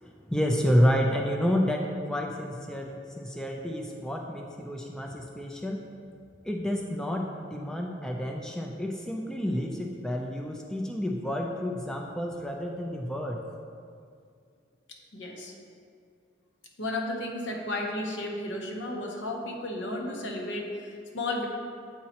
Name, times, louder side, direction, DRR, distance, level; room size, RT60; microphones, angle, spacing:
voice 1, 0.0-5.8 6.4-13.4, equal, 5° left, 0 dB, 0.3 m, -29 dB
voice 2, 15.1-15.5 16.8-21.5, left 1 dB, 70° left, 0 dB, 0.8 m, -33 dB
8.5 x 4.2 x 2.8 m, 2.3 s
head